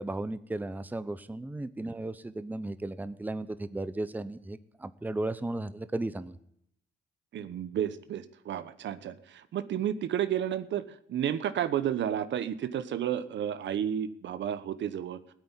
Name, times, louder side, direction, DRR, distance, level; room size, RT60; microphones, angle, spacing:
voice 1, 0.0-6.3, right 2 dB, 10° right, 14 dB, 0.7 m, -35 dB
voice 2, 7.3-15.2, right 10 dB, 65° right, 13 dB, 1.1 m, -32 dB
16.0 x 8.8 x 9.8 m, 0.72 s
cardioid pair, 90°, 20 cm